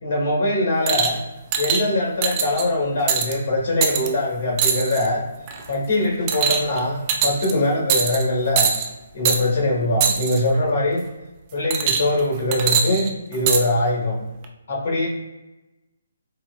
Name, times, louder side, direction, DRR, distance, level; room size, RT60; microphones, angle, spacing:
voice 1, 0.0-1.2 1.6-5.2 5.7-8.7 9.1-11.0 11.5-14.2 14.7-15.1, left 1 dB, 55° left, -2 dB, 1.4 m, -22 dB
sound 1, 0.9-1.2 1.5-1.8 2.2-2.6 3.1-3.3 3.8-4.1 4.6-5.1 5.5-5.7 6.3-6.8 7.1-7.5 7.9-8.2 8.6-8.9 9.3-9.4 10.0-10.4 11.7-12.2 12.5-13.6 14.4-14.5, right 7 dB, 30° right, 0.4 m, -22 dB
4.7 x 2.1 x 2.4 m, 1.0 s
figure-of-eight pair, 140°, 0 cm